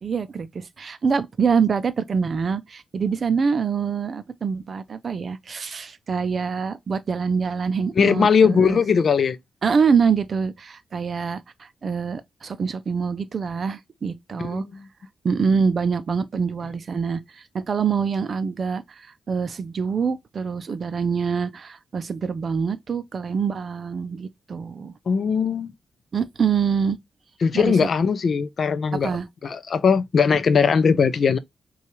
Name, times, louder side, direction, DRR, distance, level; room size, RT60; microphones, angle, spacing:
voice 1, 0.0-8.8 9.6-14.7 15.2-24.9 26.1-27.0 27.5-27.9 29.0-29.2, right 6 dB, 45° right, 0.5 m, -25 dB
voice 2, 8.0-9.4 14.4-14.7 25.1-25.7 27.4-29.2 29.4-31.4, left 6 dB, 50° left, 0.4 m, -19 dB
5.6 x 2.4 x 3.0 m
wide cardioid pair, 145°, 0 cm